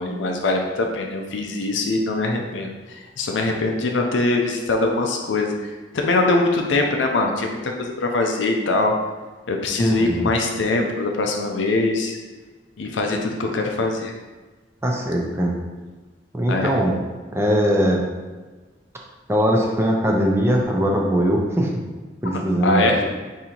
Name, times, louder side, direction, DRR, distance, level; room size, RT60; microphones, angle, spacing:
voice 1, 0.0-8.9 9.5-12.2 12.8-14.1 16.5-16.8 22.6-23.0, left 2 dB, 90° left, 2 dB, 0.5 m, -22 dB
voice 2, 9.8-10.3 14.8-15.6 16.3-17.0 17.3-18.0 19.3-21.7 22.2-23.0, equal, 15° right, -1 dB, 0.5 m, -20 dB
3.8 x 2.7 x 4.3 m, 1.3 s
head